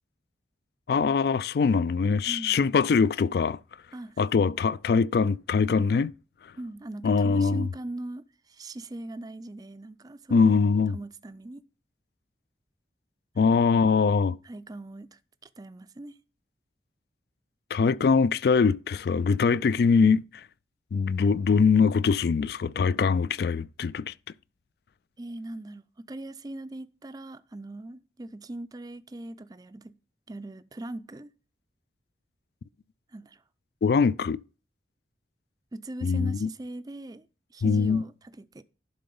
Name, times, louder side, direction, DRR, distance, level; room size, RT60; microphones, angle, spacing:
voice 1, 0.9-3.6 4.2-6.1 7.0-7.7 10.3-11.0 13.4-14.4 17.7-20.2 20.9-24.1 33.8-34.4 36.0-36.5 37.6-38.0, left 5 dB, 60° left, 0.3 m, -22 dB
voice 2, 2.3-2.7 3.9-4.2 6.6-10.6 10.9-11.6 13.4-13.5 14.4-16.2 25.2-29.9 30.3-31.3 33.1-33.4 35.7-37.3 37.5-38.6, right 1 dB, 20° right, 0.4 m, -40 dB
11.5 x 3.9 x 5.3 m
head